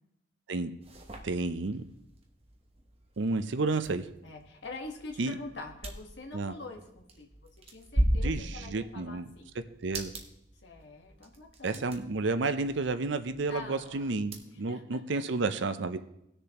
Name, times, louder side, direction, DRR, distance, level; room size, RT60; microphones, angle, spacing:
sound 1, 0.8-14.3, equal, 30° right, 1.0 m, -38 dB
voice 1, 1.2-1.9 3.2-4.1 5.2-5.4 6.3-6.5 8.2-9.3 9.8-10.1 11.6-16.0, right 3 dB, 65° right, 10 dB, 0.6 m, -31 dB
voice 2, 4.2-9.6 10.6-12.0 13.5-14.2 14.4-15.2, left 3 dB, 65° left, 1 dB, 1.5 m, -45 dB
18.5 x 6.7 x 2.9 m, 0.83 s
head